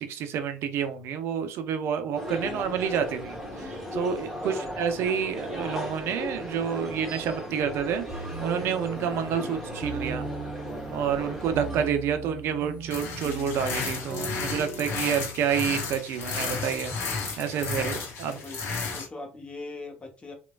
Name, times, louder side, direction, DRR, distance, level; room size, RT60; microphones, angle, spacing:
voice 1, 0.0-8.0 8.4-10.3 10.9-16.9 17.4-18.4, right 8 dB, 55° right, 8 dB, 0.5 m, -29 dB
sound 1, 2.1-11.9, equal, ahead, 1.3 m, -36 dB
voice 2, 2.4-2.7 4.4-4.7 9.3-9.6 11.1-11.5 18.4-20.3, left 2 dB, 25° left, 1 dB, 0.8 m, -41 dB
sound 2, 8.1-14.9, right 2 dB, 25° right, 1.1 m, -38 dB
sound 3, 12.9-19.1, left 4 dB, 55° left, 0.7 m, -33 dB
3.0 x 2.1 x 2.3 m, 0.33 s
hypercardioid pair, 55°, 5 cm